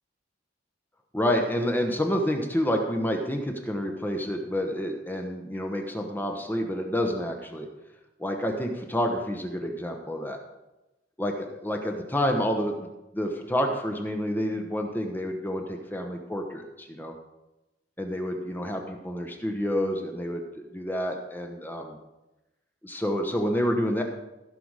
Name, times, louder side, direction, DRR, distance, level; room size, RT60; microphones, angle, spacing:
voice 1, 1.1-7.7 8.2-10.4 11.2-12.9 13.1-17.1 18.0-22.0 22.8-24.0, equal, 10° left, 3 dB, 0.9 m, -29 dB
15.5 x 5.9 x 4.8 m, 1.0 s
head